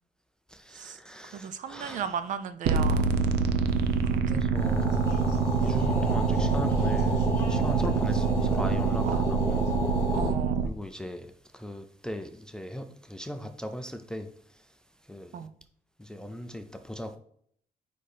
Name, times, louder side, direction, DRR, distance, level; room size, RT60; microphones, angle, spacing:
voice 1, 0.5-2.1 4.3-5.1 5.6-7.2 7.5-9.6 10.6-11.3 11.5-14.3 15.1-15.4 16.0-17.2, equal, 5° left, 0.4 m, -38 dB
voice 2, 1.3-3.1 4.0-4.4 9.0-9.4 10.1-10.7 15.3-15.5, right 7 dB, 50° right, 0.5 m, -36 dB
sound 1, 2.7-10.7, right 5 dB, 90° right, 0.6 m, -26 dB
sound 2, 4.5-10.3, left 1 dB, 20° left, 2.2 m, -32 dB
5.1 x 4.3 x 4.9 m
cardioid pair, 175°, 16 cm